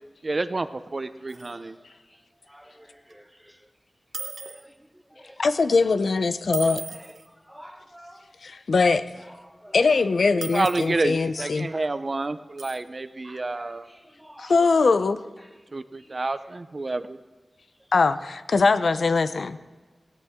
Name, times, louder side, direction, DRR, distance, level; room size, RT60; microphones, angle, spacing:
voice 1, 0.2-1.8 10.5-13.9 15.7-17.2, right 2 dB, 40° right, 0.6 m, -29 dB
voice 2, 1.1-3.7 4.1-5.9 6.6-8.6 9.2-10.0 11.4-12.0 13.2-14.9 15.4-16.2 17.8-17.9, equal, ahead, 1.0 m, -51 dB
sound 1, 1.3-1.5 3.1-3.2 4.1-4.6 6.5-7.3 10.4-10.9 12.6-12.8, right 4 dB, 90° right, 1.1 m, -37 dB
voice 3, 5.4-6.8 8.4-9.0 9.7-11.7 14.4-15.2 17.9-19.6, left 4 dB, 70° left, 0.6 m, -21 dB
16.5 x 16.5 x 3.6 m
wide cardioid pair, 105°, 0 cm